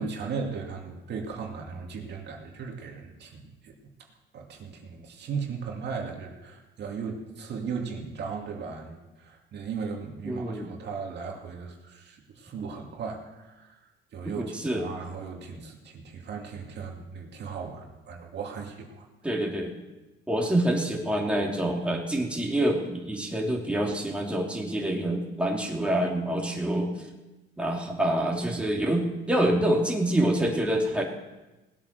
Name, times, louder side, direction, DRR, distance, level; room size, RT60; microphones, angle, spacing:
voice 1, 0.0-3.7 4.3-13.8 14.1-19.1, right 5 dB, 60° right, 1 dB, 2.4 m, -37 dB
voice 2, 10.2-10.7 14.4-14.9 19.2-19.7 20.3-26.9 27.6-31.0, right 1 dB, 5° right, -1 dB, 2.9 m, -26 dB
19.0 x 8.7 x 6.7 m, 1.1 s
cardioid pair, 105°, 20 cm